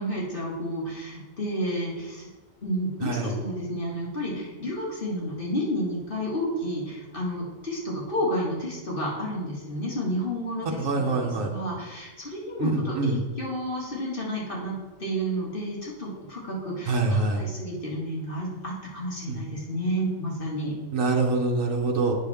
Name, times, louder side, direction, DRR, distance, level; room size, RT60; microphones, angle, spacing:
voice 1, 0.0-2.3 2.6-14.7 15.0-20.7, equal, 45° left, -4 dB, 2.2 m, -31 dB
voice 2, 3.0-3.3 10.8-11.5 12.6-13.2 16.9-17.4 19.3-19.4 20.9-22.1, right 3 dB, 80° right, 0 dB, 1.4 m, -25 dB
8.9 x 6.0 x 3.5 m, 1.2 s
omnidirectional pair, 1.3 m